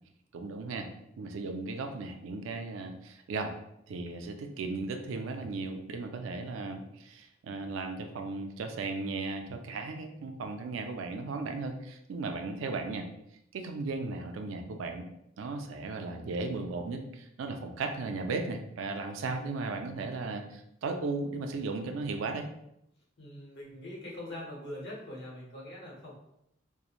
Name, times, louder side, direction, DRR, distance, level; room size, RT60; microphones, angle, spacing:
voice 1, 0.3-0.9 1.2-3.5 3.9-13.1 13.5-15.0 15.4-22.5, right 3 dB, 85° right, 5 dB, 0.4 m, -36 dB
voice 2, 23.2-26.1, left 1 dB, 60° left, -4 dB, 0.9 m, -43 dB
2.9 x 2.1 x 2.4 m, 0.78 s
head